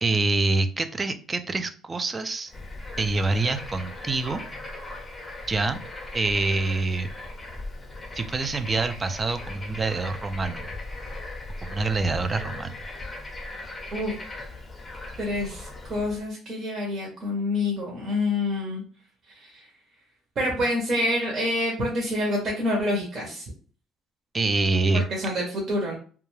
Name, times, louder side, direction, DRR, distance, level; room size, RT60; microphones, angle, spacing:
voice 1, 0.0-2.5 3.0-4.4 5.5-5.8 6.1-7.1 8.1-10.7 11.6-12.8 24.3-25.0, right 3 dB, 20° right, 9 dB, 0.3 m, -26 dB
Bird / Frog, 2.5-16.3, left 2 dB, 15° left, 0.6 m, -38 dB
voice 2, 15.2-18.8 19.3-19.6 20.4-23.5 24.9-26.0, left 1 dB, 45° right, -2 dB, 0.8 m, -27 dB
2.3 x 2.2 x 3.1 m, 0.40 s
cardioid pair, 125°, 0 cm